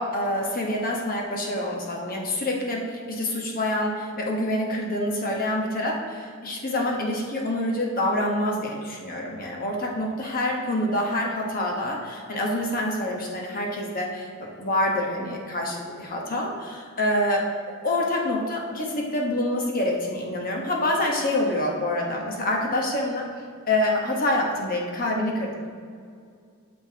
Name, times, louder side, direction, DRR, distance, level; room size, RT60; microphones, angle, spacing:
voice 1, 0.0-17.4 17.7-23.3 23.7-25.7, left 1 dB, 40° left, -1 dB, 1.2 m, -26 dB
9.0 x 6.8 x 2.9 m, 2.2 s
head